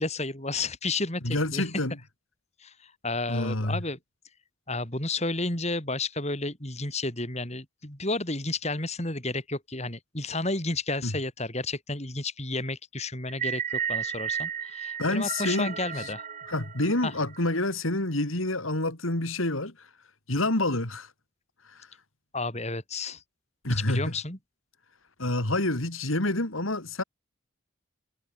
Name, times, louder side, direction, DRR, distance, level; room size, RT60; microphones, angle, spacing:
voice 1, 0.0-1.7 2.6-4.0 4.7-16.3 17.0-17.1 22.3-23.2 23.7-24.4, left 2 dB, 30° left, 5.0 m, -32 dB
voice 2, 1.2-2.0 3.3-3.8 11.0-11.1 15.0-16.1 16.5-19.9 20.3-21.1 21.7-21.9 23.6-24.1 25.2-27.0, left 2 dB, 75° left, 3.5 m, -28 dB
sound 1, 13.3-17.6, right 8 dB, 35° right, 2.6 m, -33 dB
head